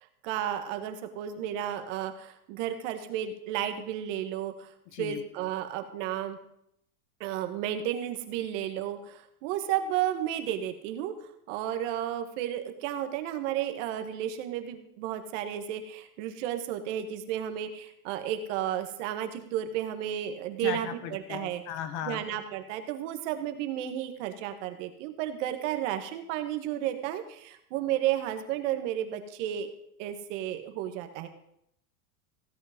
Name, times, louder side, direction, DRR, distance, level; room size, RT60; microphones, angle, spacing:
voice 1, 0.2-4.7 5.0-6.4 7.2-11.1 11.5-21.6 22.0-29.7 30.0-31.3, right 11 dB, 55° right, 8 dB, 1.8 m, -32 dB
voice 2, 20.6-22.2, left 10 dB, 50° left, 11 dB, 1.4 m, -36 dB
16.0 x 8.7 x 5.3 m, 0.74 s
supercardioid pair, 140°, 43 cm